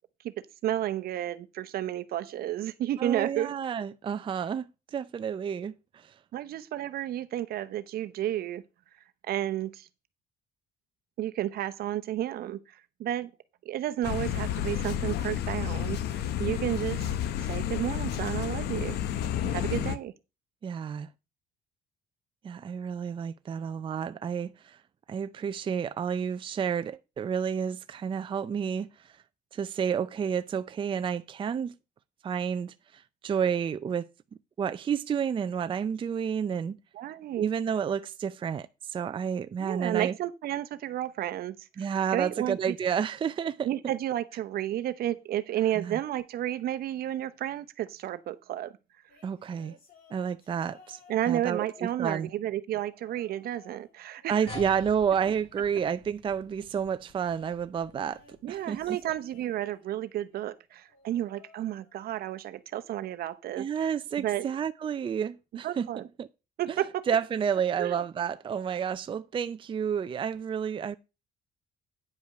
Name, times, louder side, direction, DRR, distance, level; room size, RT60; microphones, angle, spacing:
voice 1, 0.2-3.6 6.3-8.6 9.2-9.9 11.2-13.3 13.6-17.0 17.4-19.0 19.5-20.1 36.9-37.5 39.6-42.7 43.6-48.7 51.1-54.5 58.4-64.5 65.6-66.1 66.6-67.1 67.8-68.0, right 12 dB, 65° right, 0.8 m, -32 dB
voice 2, 3.0-6.1 19.4-19.9 20.6-21.1 22.4-24.8 25.1-29.1 29.5-31.7 32.2-34.1 34.6-36.8 37.4-40.1 41.8-43.7 45.8-46.0 49.2-49.8 50.1-51.0 51.3-51.7 52.0-52.3 54.3-58.2 58.5-59.0 63.6-65.9 66.2-66.3 67.1-70.9, right 7 dB, 30° right, 0.5 m, -30 dB
sound 1, 14.0-20.0, left 10 dB, 75° left, 0.9 m, -31 dB
sound 2, 49.1-52.4 52.9-53.9 54.2-55.7 57.8-60.0 60.9-62.4 62.7-63.1 64.2-64.3, left 4 dB, 60° left, 3.7 m, -59 dB
sound 3, 54.5-59.3, left 2 dB, 35° left, 3.1 m, -48 dB
9.5 x 5.2 x 5.8 m
cardioid pair, 110°, 17 cm